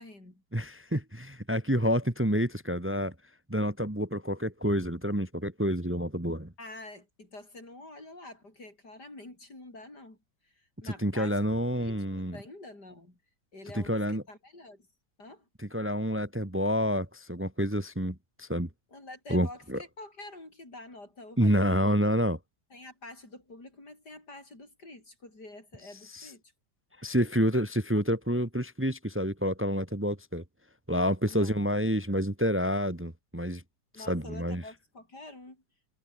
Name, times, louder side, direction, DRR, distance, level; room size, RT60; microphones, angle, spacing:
voice 1, 0.0-0.4 6.6-10.2 10.4-13.2 13.5-14.9 15.2-15.5 18.9-22.0 22.7-26.4 31.2-31.5 33.9-35.6, left 2 dB, 75° left, 8.5 m, -47 dB
voice 2, 0.5-3.1 3.5-6.5 11.0-12.4 13.7-14.2 15.7-18.7 19.3-19.8 21.4-22.4 27.0-30.4 30.9-33.6 34.1-34.6, equal, 5° right, 1.7 m, -28 dB
omnidirectional pair, 1.8 m